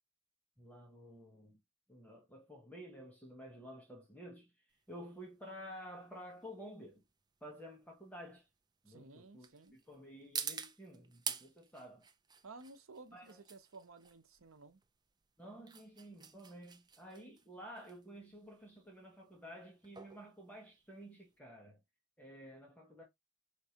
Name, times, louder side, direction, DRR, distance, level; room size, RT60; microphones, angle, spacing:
voice 1, 0.6-1.6 1.9-4.5 4.9-7.0 7.4-8.5 8.8-9.5 9.9-12.1 13.1-13.4 15.4-21.8 22.2-23.0, equal, 10° left, 1.1 m, -52 dB
sound 1, 4.7-21.4, right 6 dB, 20° right, 0.4 m, -48 dB
voice 2, 8.9-9.8 12.4-14.8, right 3 dB, 85° right, 0.8 m, -55 dB
4.6 x 3.3 x 2.8 m
head